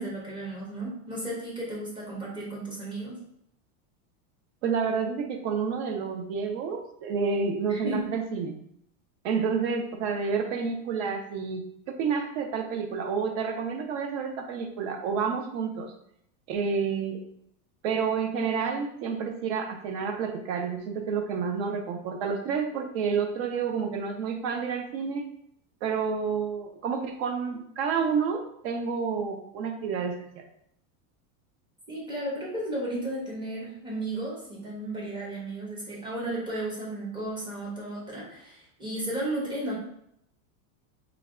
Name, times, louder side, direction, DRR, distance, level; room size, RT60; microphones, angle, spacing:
voice 1, 0.0-3.2 7.7-8.1 31.9-39.7, right 1 dB, 10° right, -5 dB, 0.7 m, -34 dB
voice 2, 4.6-8.6 9.2-15.9 16.5-17.2 17.8-25.2 25.8-30.5, right 6 dB, 45° right, 5 dB, 0.6 m, -29 dB
3.3 x 2.3 x 3.6 m, 0.73 s
supercardioid pair, 165°, 46 cm